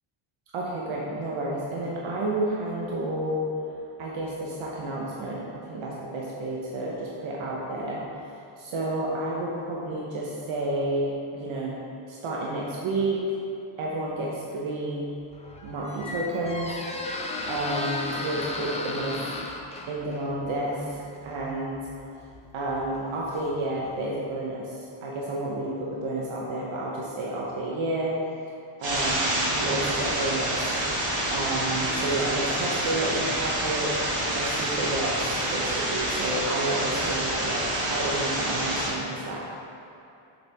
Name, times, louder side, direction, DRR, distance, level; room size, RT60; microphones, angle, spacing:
voice 1, 0.5-3.5 4.0-8.0 8.3-11.8 12.1-13.2 13.8-15.1 15.6-16.8 17.5-19.3 19.9-21.8 22.5-28.1 28.8-30.6 31.0-33.9 34.3-39.4, right 2 dB, 70° right, -4 dB, 1.1 m, -30 dB
Squeak, 15.2-24.0, left 2 dB, 15° left, 0.4 m, -36 dB
sound 1, 28.8-38.9, right 1 dB, 45° right, 1.8 m, -27 dB
7.4 x 7.0 x 3.6 m, 2.7 s
cardioid pair, 160°, 49 cm